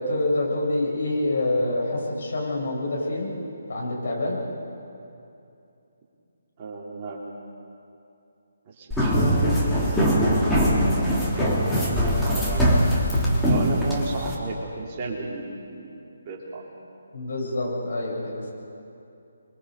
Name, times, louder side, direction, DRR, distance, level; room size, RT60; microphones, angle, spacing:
voice 1, 0.0-3.3 3.7-4.4 17.1-18.5, left 2 dB, 60° left, -3 dB, 7.7 m, -26 dB
voice 2, 6.6-7.2 8.7-9.3 10.4-11.5 11.9-12.9 13.4-15.9 16.2-16.7, right 3 dB, 30° right, -3 dB, 3.4 m, -34 dB
sound 1, 8.9-14.4, equal, 5° left, 3.0 m, -21 dB
28.5 x 22.5 x 5.3 m, 2.7 s
figure-of-eight pair, 145°, 0 cm